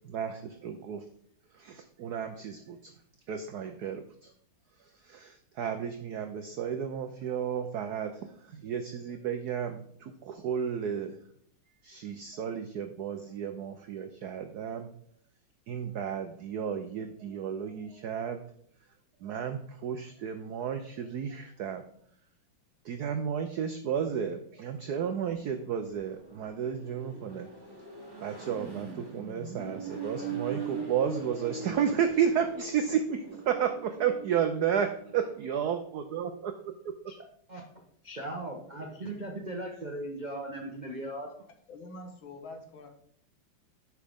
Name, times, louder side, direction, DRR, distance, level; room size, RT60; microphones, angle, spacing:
voice 1, 0.0-1.0 1.6-2.9 3.3-4.3 5.0-11.2 11.8-14.9 15.7-18.4 19.2-21.8 22.8-27.5 28.2-36.5, right 8 dB, 80° right, 7 dB, 0.8 m, -32 dB
Accelerating revving vroom, 25.0-35.4, right 4 dB, 15° right, 1.3 m, -42 dB
voice 2, 38.0-41.3, right 1 dB, 45° right, 0 dB, 0.5 m, -38 dB
voice 3, 41.7-42.9, left 2 dB, 70° left, 4 dB, 1.9 m, -45 dB
9.1 x 6.1 x 3.5 m, 0.64 s
omnidirectional pair, 2.4 m